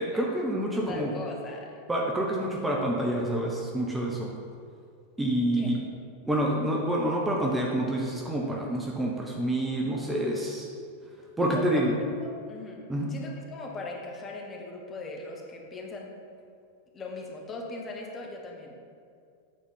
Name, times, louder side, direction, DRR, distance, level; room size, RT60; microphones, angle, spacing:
voice 1, 0.0-1.1 1.9-4.3 5.2-5.8 6.3-10.7 11.4-11.9 12.9-13.1, right 1 dB, 10° right, -2 dB, 0.9 m, -27 dB
voice 2, 0.9-1.8 5.5-5.7 11.4-11.8 12.2-12.8 13.1-16.1 16.9-18.7, left 3 dB, 25° left, -1 dB, 1.3 m, -39 dB
8.7 x 4.3 x 5.4 m, 2.3 s
figure-of-eight pair, 90°, 0 cm